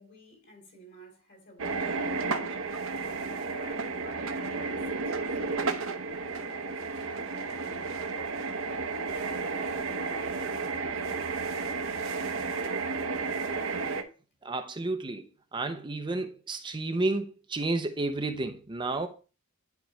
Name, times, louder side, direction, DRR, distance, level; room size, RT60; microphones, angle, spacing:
voice 1, 0.0-2.7 3.0-10.4 10.9-11.9, left 1 dB, 55° left, 2.9 m, -52 dB
sound 1, 1.6-14.0, right 4 dB, 65° right, 0.9 m, -32 dB
voice 2, 14.4-19.1, right 2 dB, 20° right, 0.6 m, -31 dB
10.5 x 4.5 x 3.0 m
head